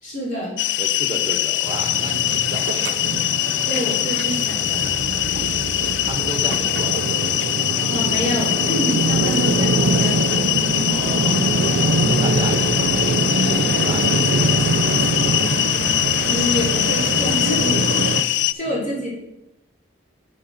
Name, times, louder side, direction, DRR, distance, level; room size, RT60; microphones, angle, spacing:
voice 1, 0.0-0.5 3.7-4.9 7.9-10.3 16.3-17.9 18.5-19.2, equal, 45° left, -6 dB, 3.7 m, -26 dB
sound 1, 0.6-18.5, left 15 dB, 85° left, 0.3 m, -22 dB
voice 2, 0.8-3.0 3.4-3.7 5.3-5.7 6.1-7.1 10.8-11.5 12.1-15.0 18.6-18.8, right 1 dB, 25° right, 4 dB, 1.1 m, -33 dB
sound 2, 1.6-18.2, right 3 dB, 85° right, 0.5 m, -23 dB
9.6 x 6.4 x 4.0 m, 0.89 s
head